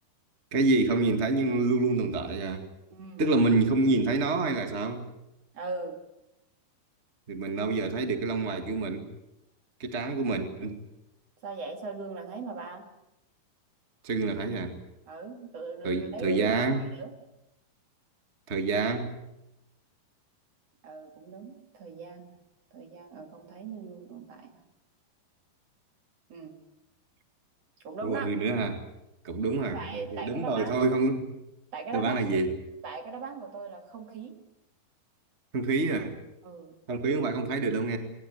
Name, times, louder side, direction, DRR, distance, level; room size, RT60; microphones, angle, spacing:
voice 1, 0.5-2.6 3.2-5.1 7.3-9.1 9.8-10.8 14.0-14.8 15.8-16.8 18.5-19.1 28.0-28.8 29.2-31.3 31.9-32.5 35.5-36.2 36.9-38.0, right 3 dB, 25° right, 7 dB, 1.5 m, -27 dB
voice 2, 2.9-3.3 5.5-6.0 11.4-12.9 15.1-17.1 20.8-22.4 22.7-24.5 26.3-26.6 27.8-28.3 29.7-30.8 31.7-32.4 32.8-34.4 36.4-36.8, right 4 dB, 45° right, 6 dB, 3.1 m, -39 dB
22.0 x 19.0 x 9.5 m, 0.88 s
omnidirectional pair, 4.3 m